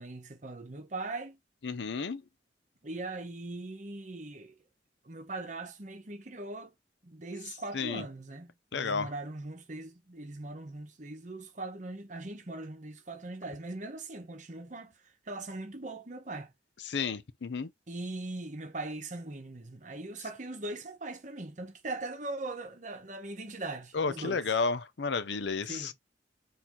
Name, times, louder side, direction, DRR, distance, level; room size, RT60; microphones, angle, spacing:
voice 1, 0.0-1.4 2.8-4.5 5.0-6.7 7.0-15.0 15.3-16.5 17.9-24.4 25.7-25.9, right 2 dB, 45° right, 1.0 m, -40 dB
voice 2, 1.6-2.2 7.7-8.0 8.7-9.1 16.8-17.7 23.9-25.9, left 4 dB, 85° left, 0.6 m, -32 dB
4.4 x 2.7 x 3.7 m
head